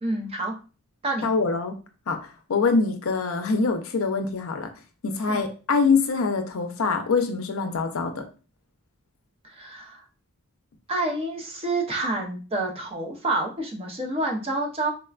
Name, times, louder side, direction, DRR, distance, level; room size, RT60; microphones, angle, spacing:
voice 1, 0.0-0.5 1.0-1.3 5.3-5.4 9.4-10.0 10.9-14.9, right 2 dB, 25° right, 1 dB, 0.6 m, -28 dB
voice 2, 1.2-1.8 2.1-4.7 5.0-8.2, left 4 dB, 65° left, 6 dB, 0.5 m, -24 dB
4.1 x 2.2 x 2.3 m, 0.35 s
head